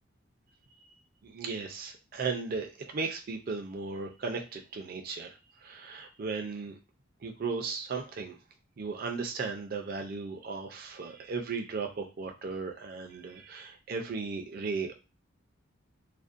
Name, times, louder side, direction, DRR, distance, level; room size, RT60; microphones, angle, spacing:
voice 1, 1.2-6.7 7.2-8.4 8.8-14.9, right 4 dB, 45° right, 4 dB, 0.4 m, -36 dB
2.5 x 2.0 x 2.4 m, 0.29 s
head